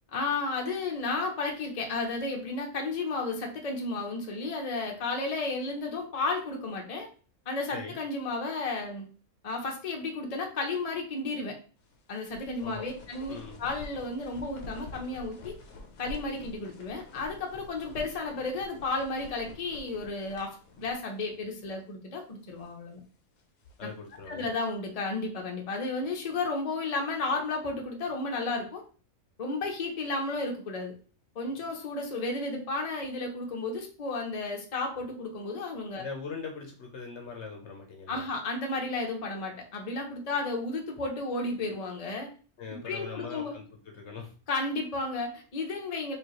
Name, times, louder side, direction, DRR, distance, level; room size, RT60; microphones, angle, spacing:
voice 1, 0.1-7.1 7.5-9.0 9.4-11.5 12.1-15.5 16.0-20.5 20.8-23.0 24.3-28.8 29.4-30.9 31.3-36.0 38.1-42.3 42.7-43.5 44.5-46.2, left 3 dB, 35° left, 1 dB, 0.8 m, -33 dB
sound 1, 11.8-21.3 21.6-21.7 22.3-22.8 23.4-24.5, left 2 dB, 85° left, 1.3 m, -48 dB
voice 2, 12.6-12.9 13.3-13.6 23.8-24.5 36.0-38.3 42.6-44.3, left 5 dB, 60° left, 3 dB, 1.0 m, -41 dB
4.6 x 2.8 x 3.0 m, 0.37 s
omnidirectional pair, 1.4 m